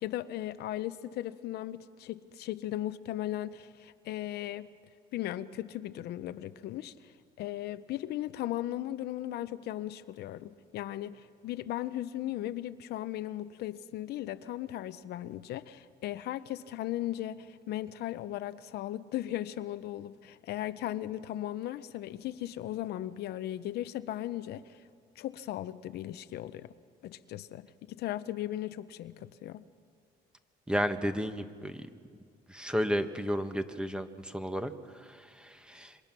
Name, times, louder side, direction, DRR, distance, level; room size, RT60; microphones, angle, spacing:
voice 1, 0.0-4.7 5.1-7.1 7.4-24.8 25.2-26.7 27.0-29.6, left 13 dB, 75° left, 0.8 m, -37 dB
voice 2, 30.7-31.9 32.5-36.0, equal, 5° right, 1.4 m, -33 dB
27.0 x 25.0 x 6.1 m
cardioid pair, 110°, 17 cm